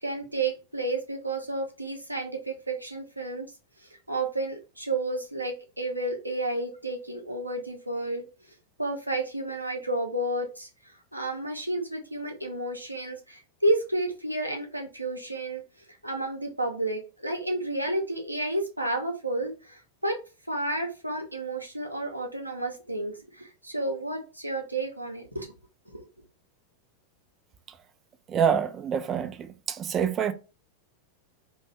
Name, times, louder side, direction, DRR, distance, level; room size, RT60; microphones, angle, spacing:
voice 1, 0.0-3.5 3.8-8.2 8.8-10.7 11.1-15.6 16.0-20.2 20.5-25.5 25.9-26.1, right 2 dB, 85° right, 0.7 m, -31 dB
voice 2, 28.3-30.3, right 7 dB, 25° right, 0.4 m, -26 dB
2.5 x 2.2 x 3.3 m
figure-of-eight pair, 90°, 0 cm